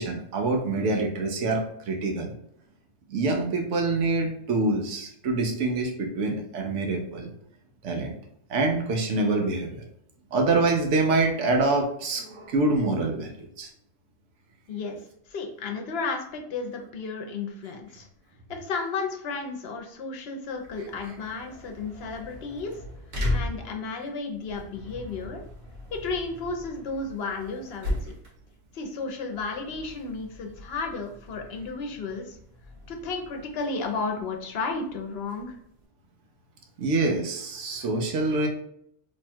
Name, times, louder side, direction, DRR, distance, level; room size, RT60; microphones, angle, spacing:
voice 1, 0.0-2.3 3.1-7.3 7.8-8.2 8.5-9.8 10.3-13.7 36.8-38.5, right 3 dB, 90° right, 2 dB, 1.0 m, -26 dB
voice 2, 14.7-15.0 15.3-18.1 18.5-22.8 23.3-25.4 25.9-28.1 28.7-32.4 32.9-35.6, left 4 dB, 60° left, 3 dB, 0.9 m, -33 dB
sound 1, 20.4-35.8, left 1 dB, 60° right, 1.2 m, -38 dB
3.0 x 2.2 x 4.2 m, 0.70 s
omnidirectional pair, 1.2 m